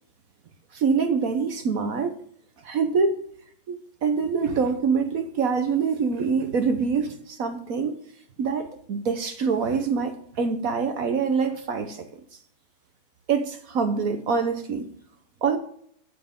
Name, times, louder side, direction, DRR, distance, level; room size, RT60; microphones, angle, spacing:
voice 1, 0.7-2.1 2.6-3.2 3.7-8.0 8.4-12.1 13.3-14.9 15.4-15.6, right 5 dB, 55° right, 1.0 m, -25 dB
9.7 x 8.6 x 3.6 m
omnidirectional pair, 2.4 m